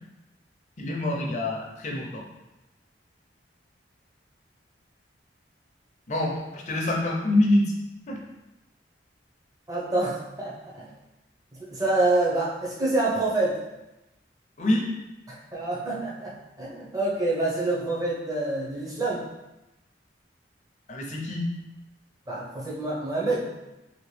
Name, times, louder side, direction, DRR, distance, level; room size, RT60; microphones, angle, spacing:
voice 1, 0.8-2.2 6.1-7.7 8.1-8.2 14.6-14.8 20.9-21.5, left 1 dB, 40° left, -1 dB, 0.6 m, -25 dB
voice 2, 9.7-10.9 11.7-13.6 15.3-19.2 22.3-23.5, right 2 dB, 20° right, -6 dB, 0.8 m, -27 dB
3.0 x 2.9 x 3.2 m, 0.98 s
head